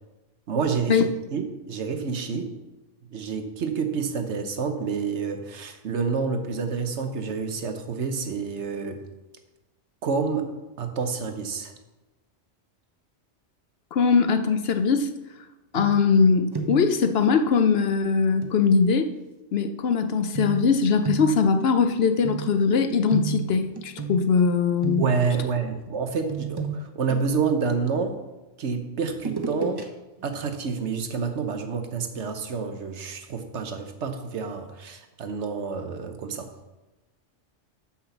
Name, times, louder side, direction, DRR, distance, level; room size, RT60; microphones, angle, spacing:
voice 1, 0.5-1.0 1.3-2.5 3.1-9.0 10.0-10.5 10.8-11.7 25.0-28.2 28.6-29.9 30.2-36.5, right 5 dB, 70° right, 7 dB, 1.2 m, -28 dB
voice 2, 13.9-15.1 15.7-19.1 19.5-25.0, left 5 dB, 65° left, 8 dB, 0.8 m, -21 dB
sound 1, 15.7-16.2 16.5-17.0 18.4-18.6 20.3-24.5 24.8-25.4 26.3-28.1 29.1-29.8 30.2-30.3, right 5 dB, 25° right, 0.7 m, -32 dB
6.4 x 5.7 x 7.1 m, 1.1 s
omnidirectional pair, 1.2 m